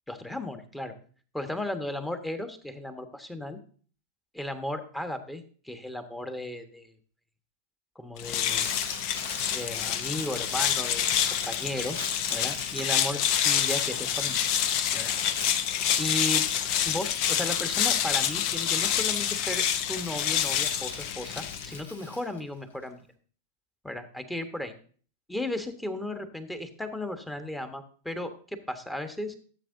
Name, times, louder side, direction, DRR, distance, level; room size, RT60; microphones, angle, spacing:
voice 1, 0.1-0.9 1.3-3.6 4.3-6.9 7.9-8.7 9.5-11.1 11.5-12.0 12.3-14.4 14.9-15.1 16.0-16.5 16.8-19.6 19.9-23.0 23.8-24.7 25.3-29.4, left 1 dB, 5° left, 8 dB, 1.2 m, -35 dB
sound 1, 8.2-21.8, left 9 dB, 50° left, 0.7 m, -27 dB
Crumpling crinkling, 8.4-22.8, left 2 dB, 80° left, 1.9 m, -44 dB
13.5 x 7.7 x 2.6 m, 0.43 s
figure-of-eight pair, 95°, 0 cm